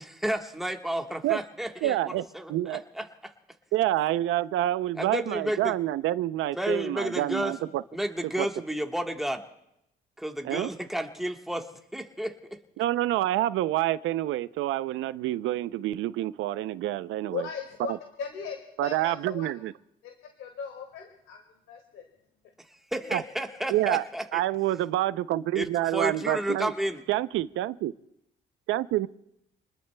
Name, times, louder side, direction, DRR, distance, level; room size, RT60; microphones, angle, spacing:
voice 1, 0.0-3.3 5.0-5.8 6.5-7.5 7.9-9.4 10.2-11.7 11.9-12.6 22.9-24.4 25.5-27.0, right 1 dB, ahead, 3 dB, 1.4 m, -31 dB
voice 2, 1.8-2.2 2.5-2.8 3.7-7.8 8.4-8.5 10.4-10.7 12.8-17.4 18.8-19.7 23.1-23.2 23.7-24.0 24.3-26.7 27.1-27.9 28.7-29.1, right 14 dB, 90° right, 15 dB, 0.5 m, -27 dB
voice 3, 17.3-19.5 20.0-22.1, left 6 dB, 85° left, 3 dB, 2.1 m, -38 dB
29.0 x 20.5 x 2.2 m, 0.82 s
cardioid pair, 90°, 20 cm